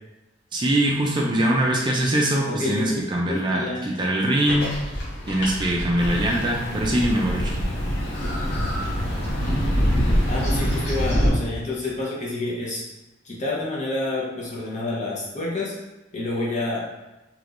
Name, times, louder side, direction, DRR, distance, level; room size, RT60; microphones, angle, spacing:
voice 1, 0.5-4.7 5.3-7.5, right 1 dB, 25° right, -1 dB, 0.4 m, -22 dB
voice 2, 2.5-3.0 3.3-3.9 10.3-12.8 13.2-15.8 16.1-16.9, left 2 dB, 40° left, -5 dB, 0.8 m, -28 dB
sound 1, 4.5-11.3, equal, 60° left, 1.2 m, -25 dB
sound 2, 6.0-11.1, left 1 dB, 75° left, 0.7 m, -37 dB
3.4 x 2.9 x 2.5 m, 1.0 s
head